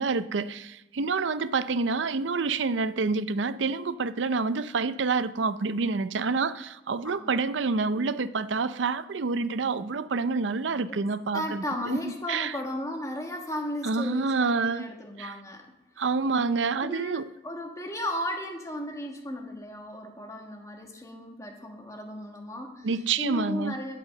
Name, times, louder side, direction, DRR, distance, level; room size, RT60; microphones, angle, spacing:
voice 1, 0.0-12.5 13.8-14.9 15.2-15.4 16.0-17.3 22.8-23.7, right 4 dB, 85° right, 0.5 m, -28 dB
voice 2, 7.0-7.4 11.3-15.6 16.8-22.9 23.2-24.0, left 1 dB, 15° left, 1.5 m, -35 dB
12.5 x 5.4 x 6.6 m
head